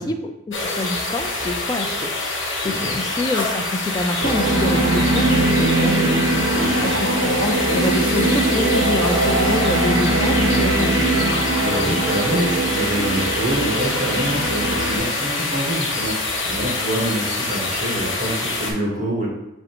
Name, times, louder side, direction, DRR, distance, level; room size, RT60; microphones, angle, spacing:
voice 1, 0.0-6.5 6.8-11.3, left 2 dB, 20° left, 5 dB, 0.3 m, -27 dB
sound 1, 0.5-18.7, left 2 dB, 75° left, 0.8 m, -25 dB
voice 2, 2.5-3.0 6.5-6.9 11.6-19.3, right 1 dB, 40° right, -2 dB, 1.1 m, -26 dB
sound 2, 4.2-15.0, right 2 dB, 70° right, 0.9 m, -21 dB
5.2 x 3.2 x 2.8 m, 0.90 s
head